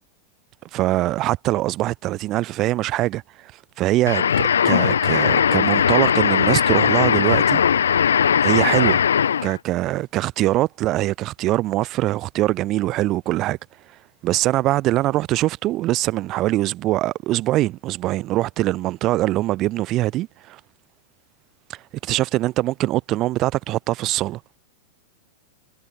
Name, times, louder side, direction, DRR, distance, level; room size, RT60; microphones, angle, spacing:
voice 1, 0.7-3.5 3.8-7.6 8.4-9.0 9.4-13.6 14.2-20.6 21.7-24.4, right 16 dB, 40° right, 6.9 m, -23 dB
sound 1, 4.1-9.6, left 8 dB, 80° left, 1.6 m, -19 dB
hypercardioid pair, 100°, 0 cm